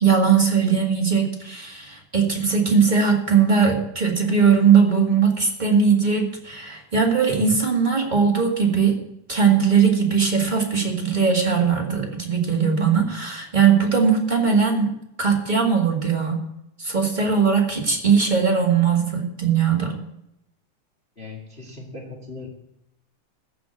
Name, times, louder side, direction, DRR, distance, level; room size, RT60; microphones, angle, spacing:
voice 1, 0.0-8.9 9.3-14.9 15.2-16.4 16.8-20.0, right 6 dB, 20° right, 0 dB, 1.5 m, -19 dB
voice 2, 21.2-22.5, left 3 dB, 25° left, -1 dB, 1.9 m, -38 dB
14.5 x 6.0 x 8.9 m, 0.82 s
omnidirectional pair, 3.5 m